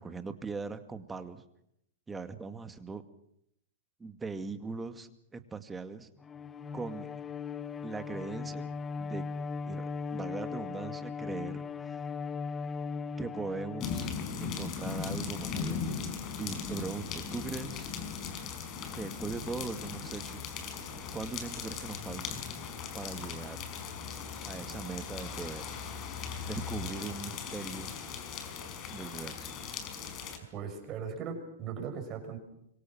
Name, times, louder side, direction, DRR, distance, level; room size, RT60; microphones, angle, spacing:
voice 1, 0.0-1.4 2.1-3.0 4.0-6.1 6.7-7.1 7.8-8.7 9.0-9.3 9.7-9.9 10.1-12.1 13.2-14.1 14.4-15.8 16.4-17.9 18.9-20.5 21.1-22.4 22.9-23.7 24.4-25.8 26.4-28.0 28.9-29.5, right 4 dB, 15° right, 8 dB, 2.3 m, -40 dB
Bowed string instrument, 6.2-14.6, left 5 dB, 15° left, 1.2 m, -38 dB
sound 1, 13.8-30.4, left 6 dB, 35° left, 5.5 m, -38 dB
voice 2, 30.5-32.4, right 6 dB, 35° right, 4 dB, 7.0 m, -38 dB
26.0 x 24.5 x 6.3 m, 0.75 s
hypercardioid pair, 110°, 0 cm